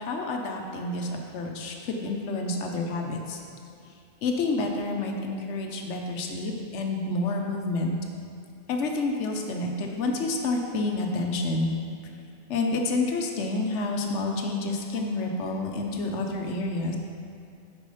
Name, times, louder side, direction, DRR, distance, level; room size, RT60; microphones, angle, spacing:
voice 1, 0.0-3.4 4.2-8.0 8.7-11.7 12.5-17.0, left 2 dB, 75° left, 2 dB, 1.0 m, -29 dB
5.2 x 4.8 x 5.3 m, 2.5 s
omnidirectional pair, 1.2 m